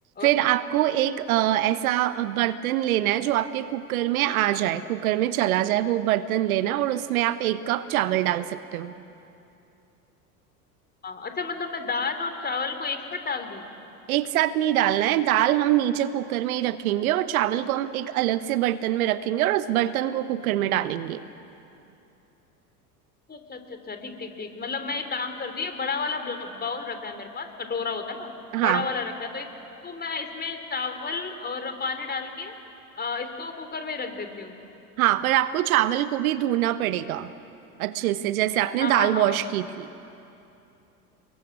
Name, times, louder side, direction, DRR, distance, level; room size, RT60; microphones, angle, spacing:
voice 1, 0.2-8.9 14.1-21.2 28.5-28.9 35.0-37.3 37.8-39.9, right 13 dB, 65° right, 13 dB, 1.1 m, -24 dB
voice 2, 11.0-13.7 23.3-28.3 28.6-29.5 29.8-32.5 33.0-34.5 38.8-39.4, left 4 dB, 20° left, 7 dB, 3.5 m, -31 dB
28.0 x 22.0 x 9.5 m, 2.8 s
figure-of-eight pair, 80°, 47 cm